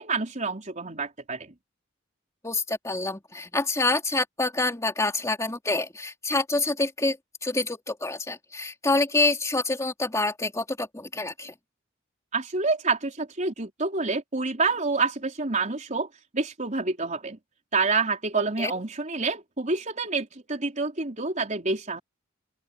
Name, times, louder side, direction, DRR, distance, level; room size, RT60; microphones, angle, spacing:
voice 1, 0.0-1.5 12.3-16.1 16.3-17.4 17.7-22.0, right 3 dB, 40° right, 4.2 m, -28 dB
voice 2, 2.4-7.2 7.4-11.5 18.6-18.7, left 2 dB, 15° left, 2.9 m, -27 dB
open air
head